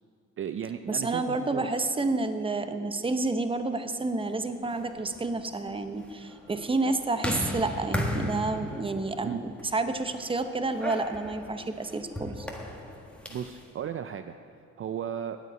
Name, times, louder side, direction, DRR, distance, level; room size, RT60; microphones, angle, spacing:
voice 1, 0.4-1.7 9.2-9.4 13.3-14.4 14.8-15.4, right 9 dB, 45° right, 9 dB, 0.5 m, -35 dB
voice 2, 0.9-12.5, right 3 dB, 20° right, 9 dB, 0.8 m, -30 dB
sound 1, 4.5-13.6, left 1 dB, 5° left, 1.6 m, -37 dB
9.2 x 8.4 x 8.6 m, 2.3 s
cardioid pair, 90°, 30 cm